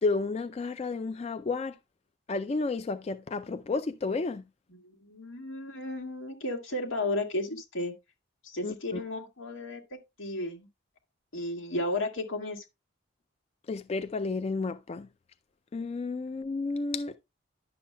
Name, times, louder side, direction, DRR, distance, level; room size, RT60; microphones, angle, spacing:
voice 1, 0.0-1.8 2.3-4.4 8.6-9.0 13.7-15.1 15.7-17.2, left 3 dB, 30° left, 0.3 m, -31 dB
voice 2, 4.7-7.9 8.4-10.7 11.3-12.6, left 2 dB, 90° left, 1.9 m, -34 dB
11.0 x 7.0 x 2.2 m
head